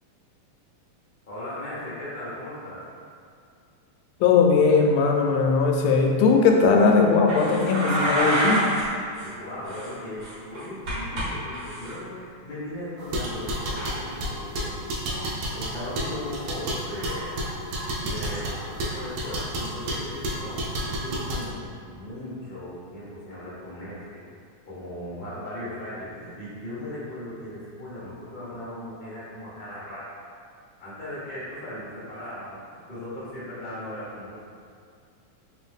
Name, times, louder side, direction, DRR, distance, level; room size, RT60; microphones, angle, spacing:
voice 1, 1.3-2.8 9.2-14.9 15.5-17.4 18.0-24.2 24.7-30.1 30.8-34.4, left 1 dB, 70° left, -10 dB, 0.5 m, -37 dB
voice 2, 4.2-8.7, left 4 dB, 90° left, 1 dB, 2.0 m, -19 dB
sound 1, 7.3-8.8 9.1-9.3 9.7-11.2 11.5-11.9 13.7-13.9, right 1 dB, 65° right, 1.0 m, -27 dB
sound 2, 13.0-21.5, right 1 dB, 80° right, 1.4 m, -31 dB
4.5 x 2.7 x 3.4 m, 2.3 s
omnidirectional pair, 3.5 m